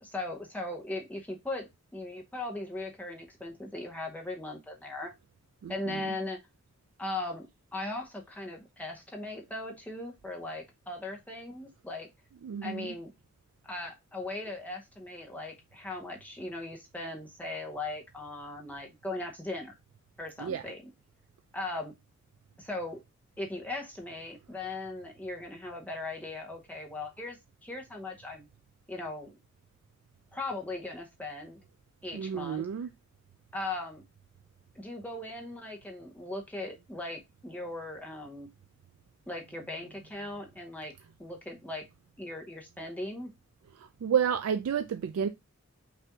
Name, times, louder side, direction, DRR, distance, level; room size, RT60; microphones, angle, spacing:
voice 1, 0.0-5.1 5.7-6.4 7.0-12.1 12.6-13.1 13.6-19.7 20.2-20.9 21.5-21.9 22.6-23.0 23.4-28.5 28.9-29.3 30.3-31.6 32.0-32.7 33.5-34.0 34.7-38.5 39.3-40.9 41.2-41.8 42.2-43.3, left 2 dB, 5° left, 0.8 m, -38 dB
voice 2, 5.6-6.2 12.4-13.0 20.4-20.7 32.1-32.9 43.8-45.3, right 8 dB, 85° right, 0.3 m, -31 dB
5.5 x 2.6 x 3.4 m
head